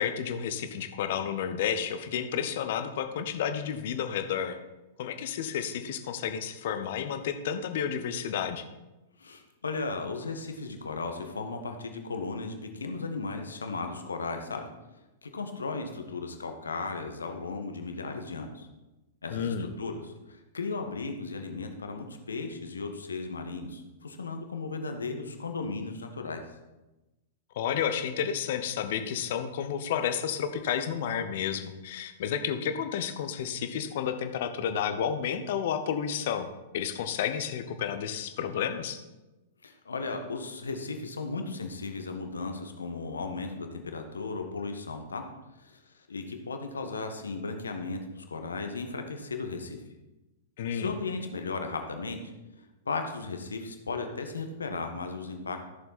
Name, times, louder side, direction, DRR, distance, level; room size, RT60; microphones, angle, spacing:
voice 1, 0.0-4.6 5.0-8.6 19.3-19.7 27.6-36.5 36.7-39.0 50.6-50.9, left 8 dB, 50° left, 8 dB, 1.1 m, -31 dB
voice 2, 9.2-14.6 15.2-18.7 19.2-26.4 39.6-45.2 45.6-49.8 50.7-52.3 52.6-55.6, left 3 dB, 75° left, 5 dB, 1.5 m, -36 dB
14.5 x 7.0 x 4.3 m, 1.0 s
figure-of-eight pair, 100°, 0 cm